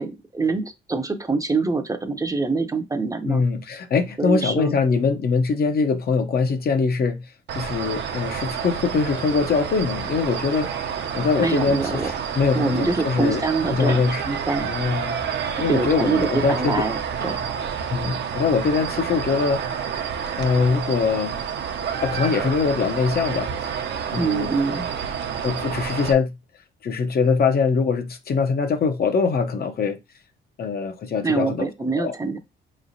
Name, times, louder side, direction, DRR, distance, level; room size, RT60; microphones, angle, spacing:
voice 1, 0.0-3.4 4.2-4.8 11.4-12.1 12.5-14.7 15.7-17.0 17.2-17.4 24.2-24.9 31.2-32.4, right 3 dB, 15° right, 0.6 m, -25 dB
voice 2, 3.2-10.7 11.1-13.4 13.7-14.2 14.6-15.2 15.6-16.7 17.9-19.6 20.4-21.3 22.0-23.7 24.1-24.5 25.4-26.4 26.8-30.0 30.6-31.7 32.0-32.1, left 5 dB, 50° left, 0.7 m, -22 dB
sound 1, 7.5-26.1, right 7 dB, 60° right, 0.7 m, -29 dB
4.8 x 3.2 x 2.7 m
cardioid pair, 90°, 20 cm